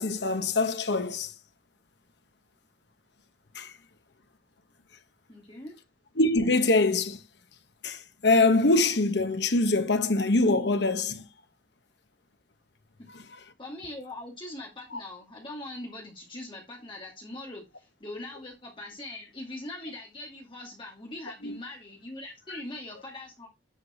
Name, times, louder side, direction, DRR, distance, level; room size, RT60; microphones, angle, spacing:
voice 1, 0.0-1.3 3.5-3.7 6.2-7.2 7.8-11.3 13.1-13.2 21.4-21.6, left 2 dB, 75° left, 1.1 m, -24 dB
voice 2, 5.3-5.8 13.0-13.1 13.6-23.5, left 1 dB, 30° left, 2.4 m, -41 dB
10.0 x 5.0 x 4.3 m
head